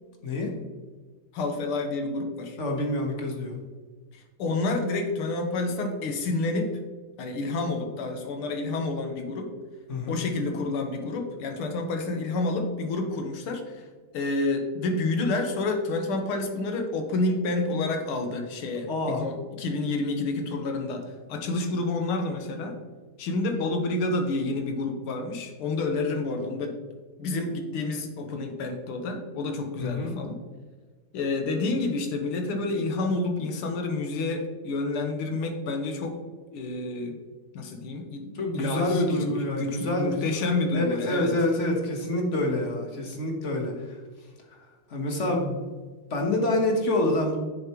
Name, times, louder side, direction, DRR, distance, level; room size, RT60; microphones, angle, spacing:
voice 1, 1.3-2.6 4.1-6.8 7.2-9.5 10.1-13.8 14.1-22.8 23.2-26.8 27.2-30.4 31.1-36.2 36.5-37.2 37.5-41.3, left 2 dB, 80° left, 4 dB, 1.9 m, -29 dB
voice 2, 2.6-3.5 9.9-10.2 18.9-19.3 29.8-30.2 38.3-40.2 40.7-44.0 44.9-45.6 46.1-47.4, left 1 dB, 40° left, 1 dB, 1.3 m, -27 dB
8.9 x 6.9 x 3.0 m, 1.4 s
omnidirectional pair, 2.4 m